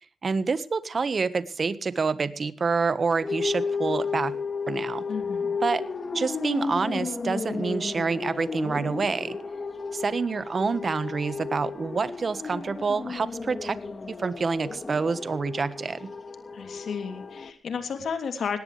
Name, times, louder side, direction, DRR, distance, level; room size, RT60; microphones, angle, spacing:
voice 1, 0.2-4.3 4.7-5.0 5.6-5.8 6.1-9.4 9.9-13.8 14.1-16.1, right 4 dB, 50° right, 14 dB, 1.4 m, -27 dB
sound 1, 3.2-17.5, left 4 dB, 40° left, 2.2 m, -33 dB
voice 2, 5.1-5.6 16.5-18.6, left 6 dB, 75° left, 7 dB, 3.1 m, -32 dB
19.0 x 18.0 x 3.3 m, 0.36 s
cardioid pair, 90°, 0 cm